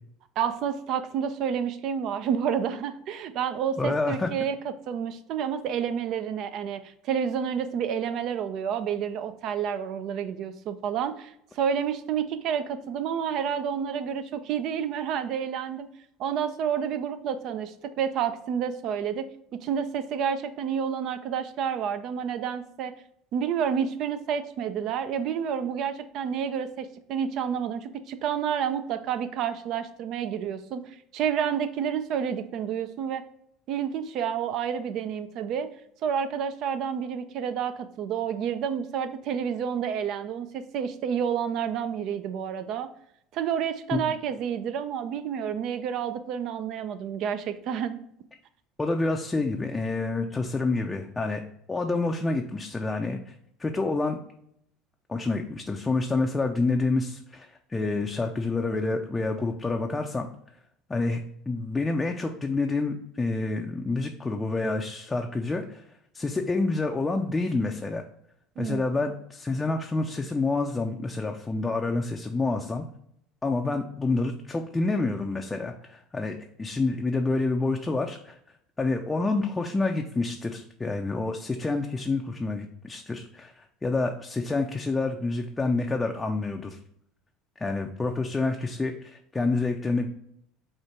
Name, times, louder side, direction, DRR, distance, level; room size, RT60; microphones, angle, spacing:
voice 1, 0.4-15.9 16.2-19.3 19.6-22.9 23.3-33.2 33.7-35.7 36.0-42.9 43.3-48.0 68.6-68.8, right 8 dB, 60° right, 11 dB, 0.4 m, -29 dB
voice 2, 3.8-4.3 43.9-44.1 48.8-51.4 51.7-53.3 53.6-54.2 55.1-60.3 60.9-65.8 66.1-68.0 68.6-72.8 73.4-78.4 78.8-86.8 87.6-90.1, left 3 dB, 20° left, 3 dB, 0.4 m, -28 dB
4.4 x 2.5 x 4.5 m, 0.71 s
hypercardioid pair, 85°, 0 cm